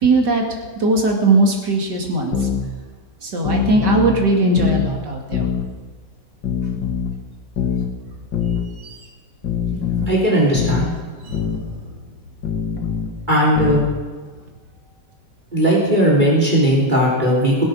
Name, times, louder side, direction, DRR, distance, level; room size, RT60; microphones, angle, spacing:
voice 1, 0.0-0.4 0.8-2.3 3.2-5.5 8.8-8.9 11.2-11.4, right 2 dB, 70° right, 1 dB, 3.0 m, -18 dB
sound 1, 2.3-2.6 3.4-4.2 4.6-4.9 5.3-5.7 6.4-7.2 7.6-7.9 8.3-8.7 9.4-10.1 10.6-10.9 11.3-11.6 12.4-13.1 13.6-13.9, left 7 dB, 80° left, 2.5 m, -22 dB
voice 2, 9.7-10.9 13.3-13.8 15.5-17.6, equal, 25° right, -4 dB, 3.7 m, -17 dB
20.5 x 8.7 x 6.4 m, 1.4 s
omnidirectional pair, 1.9 m